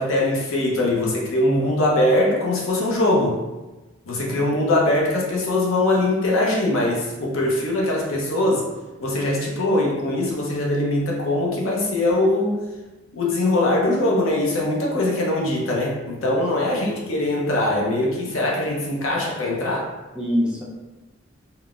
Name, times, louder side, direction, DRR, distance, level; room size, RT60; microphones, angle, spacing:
voice 1, 0.0-3.4 4.1-8.7 9.0-12.6 13.1-19.9, left 1 dB, 80° left, -3 dB, 0.7 m, -22 dB
voice 2, 16.3-17.0 20.1-20.6, equal, 5° right, -7 dB, 0.5 m, -27 dB
3.8 x 2.1 x 2.4 m, 1.1 s
head